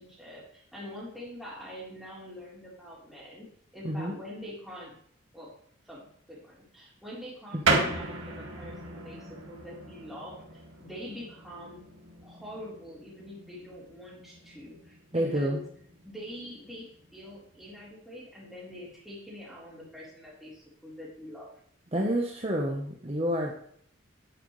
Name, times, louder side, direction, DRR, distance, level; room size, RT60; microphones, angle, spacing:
voice 1, 0.0-3.5 3.7-5.0 5.3-5.5 5.9-10.4 10.8-11.8 12.2-15.6 16.0-21.5, equal, ahead, -6 dB, 3.7 m, -44 dB
sound 1, 7.6-17.8, right 3 dB, 70° right, 2.0 m, -36 dB
voice 2, 15.1-15.6 21.9-23.6, equal, 30° right, 0 dB, 1.0 m, -29 dB
10.0 x 9.3 x 3.2 m, 0.64 s
head